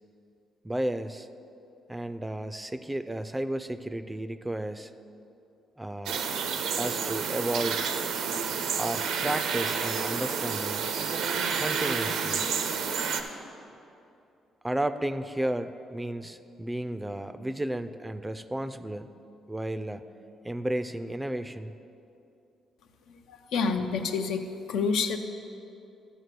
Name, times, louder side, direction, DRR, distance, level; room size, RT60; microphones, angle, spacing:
voice 1, 0.6-1.3 1.9-4.9 5.8-6.3 6.8-7.8 8.8-10.9 11.6-12.4 14.6-19.1 19.5-20.1 20.4-21.7, right 1 dB, 10° right, 11 dB, 0.4 m, -33 dB
sound 1, 6.1-13.2, right 6 dB, 85° right, 0.6 m, -30 dB
voice 2, 23.1-25.2, left 5 dB, 80° left, 5 dB, 0.6 m, -29 dB
12.0 x 4.2 x 6.7 m, 2.7 s
cardioid pair, 90°, 0 cm